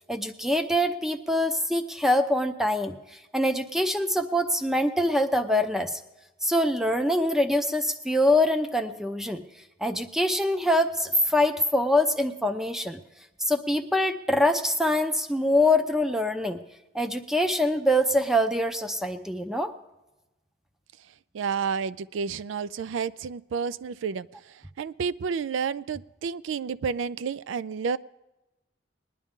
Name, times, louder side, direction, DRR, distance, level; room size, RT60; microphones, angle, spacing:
voice 1, 0.1-6.0 6.4-9.4 9.8-13.0 13.5-16.6 16.9-19.7, left 1 dB, ahead, 8 dB, 0.6 m, -24 dB
voice 2, 21.3-28.0, right 6 dB, 85° right, 17 dB, 0.4 m, -30 dB
20.0 x 11.0 x 3.6 m, 0.99 s
head